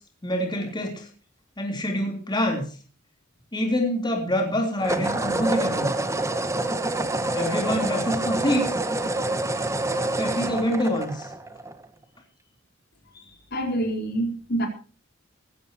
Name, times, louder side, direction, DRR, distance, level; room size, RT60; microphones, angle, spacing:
voice 1, 0.2-1.1 1.6-2.8 3.5-5.9 7.3-8.7 9.9-11.3, equal, 20° left, 2 dB, 3.5 m, -26 dB
sound 1, 0.6-0.9 4.8-11.9, right 2 dB, 15° right, 1.5 m, -27 dB
voice 2, 13.1-14.7, right 1 dB, 55° left, 4 dB, 4.3 m, -27 dB
19.5 x 16.0 x 3.0 m, 0.36 s
head